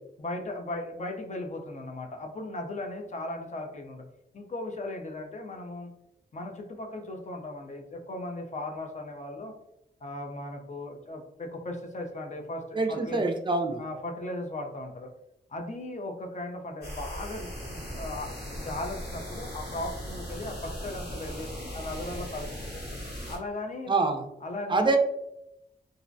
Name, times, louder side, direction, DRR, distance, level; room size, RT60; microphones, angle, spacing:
voice 1, 0.2-4.0 4.3-5.9 6.3-9.5 10.0-13.3 13.8-15.1 15.5-18.3 18.6-22.8 23.3-24.1 24.4-25.0, left 2 dB, 45° left, 3 dB, 0.5 m, -37 dB
voice 2, 12.7-13.8 23.9-24.3 24.7-25.0, right 3 dB, 30° right, 5 dB, 0.4 m, -25 dB
sound 1, 16.8-23.4, equal, 70° left, 1.0 m, -38 dB
2.4 x 2.1 x 2.5 m, 0.83 s
wide cardioid pair, 85°, 18 cm